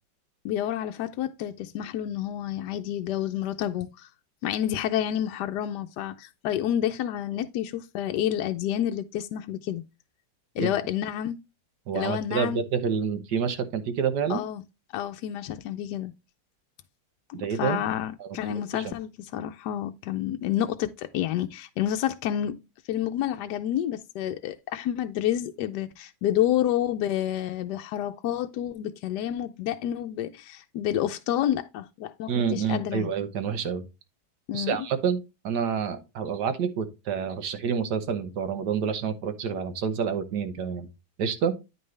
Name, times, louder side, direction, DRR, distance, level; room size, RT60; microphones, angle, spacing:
voice 1, 0.4-4.1 4.4-9.8 10.6-11.4 11.9-12.6 14.3-14.6 14.9-16.1 17.5-22.6 22.9-33.1 34.5-34.9, left 11 dB, 75° left, 1.2 m, -29 dB
voice 2, 11.9-14.4 17.3-17.8 18.2-18.8 32.3-33.8 34.5-40.9 41.2-41.5, right 7 dB, 75° right, 1.6 m, -28 dB
9.5 x 5.3 x 3.2 m
omnidirectional pair, 1.8 m